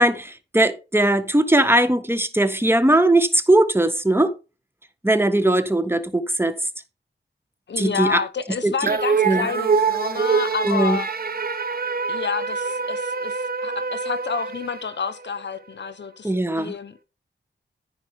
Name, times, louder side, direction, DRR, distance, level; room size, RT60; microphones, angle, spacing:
voice 1, 0.0-4.3 5.0-6.5 7.8-8.2 8.6-8.7 9.2-9.5 10.6-11.0 16.2-16.7, right 1 dB, 10° right, 1.6 m, -19 dB
voice 2, 7.7-11.1 12.1-13.4 13.6-17.0, left 6 dB, 70° left, 1.1 m, -29 dB
sound 1, 8.9-15.4, right 5 dB, 50° right, 1.3 m, -25 dB
14.5 x 5.0 x 3.6 m
cardioid pair, 65°, 19 cm